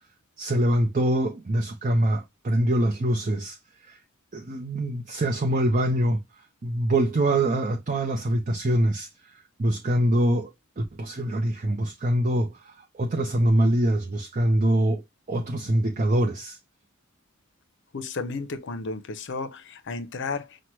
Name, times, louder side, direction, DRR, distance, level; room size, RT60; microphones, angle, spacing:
voice 1, 0.4-4.0 4.3-6.2 6.6-16.6, right 1 dB, 40° right, 0.6 m, -24 dB
voice 2, 17.9-20.6, left 3 dB, 60° left, 0.7 m, -33 dB
5.9 x 2.2 x 3.0 m
head